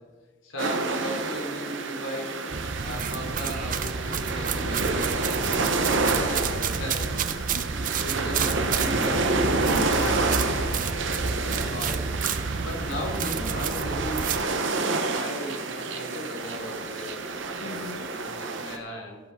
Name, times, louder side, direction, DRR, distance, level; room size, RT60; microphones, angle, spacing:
voice 1, 0.4-5.4 6.0-7.1 7.4-7.6 8.0-10.1 10.4-10.6 11.3-12.1 12.4-17.2 17.6-19.2, equal, 75° left, -1 dB, 3.5 m, -37 dB
sound 1, 0.6-18.8, right 3 dB, 65° right, 1.1 m, -29 dB
sound 2, 2.5-14.5, right 5 dB, 40° right, 0.5 m, -30 dB
voice 2, 5.4-7.9 9.6-10.9 17.6-18.1, left 2 dB, 60° left, 9 dB, 1.0 m, -40 dB
16.0 x 6.1 x 6.0 m, 1.3 s
head